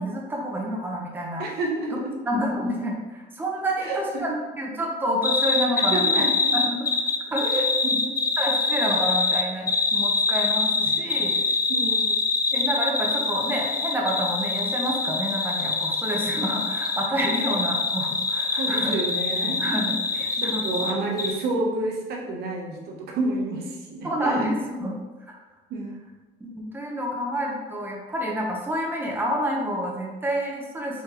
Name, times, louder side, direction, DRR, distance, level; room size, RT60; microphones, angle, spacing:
voice 1, 0.0-1.4 2.2-6.3 6.5-6.9 7.3-7.5 8.4-11.3 12.5-19.0 19.6-20.9 24.0-25.0 25.3-25.4 26.4-31.0, equal, 10° right, -2 dB, 0.8 m, -28 dB
voice 2, 1.4-2.1 3.8-4.2 5.7-6.5 7.4-8.0 10.9-11.0 11.7-12.1 18.6-19.6 20.4-24.5 25.7-25.9, right 2 dB, 70° right, 0 dB, 0.8 m, -29 dB
sound 1, 5.2-20.9 21.2-21.3, left 3 dB, 20° left, 0.4 m, -25 dB
3.7 x 3.4 x 2.9 m, 1.2 s
cardioid pair, 110°, 17 cm